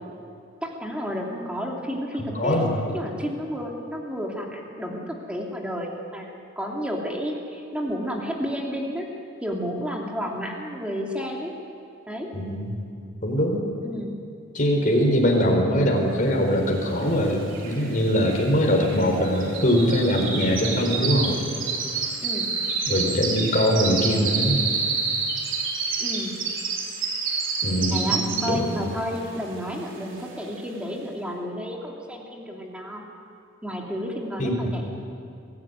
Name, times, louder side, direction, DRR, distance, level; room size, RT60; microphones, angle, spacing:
voice 1, 0.6-9.1 9.4-11.5 12.1-12.3 13.8-14.2 22.2-22.5 26.0-26.3 27.9-33.0 33.6-34.8, equal, 5° right, -1 dB, 2.9 m, -31 dB
voice 2, 2.2-2.8 12.3-12.7 13.2-13.6 14.5-21.4 22.9-24.6 27.6-28.9 34.4-34.7, equal, 40° left, 1 dB, 4.2 m, -22 dB
sound 1, 17.0-17.1 17.3-28.8 29.2-29.5 29.9-30.0, right 5 dB, 75° right, 3.4 m, -28 dB
24.5 x 14.5 x 9.5 m, 2.5 s
head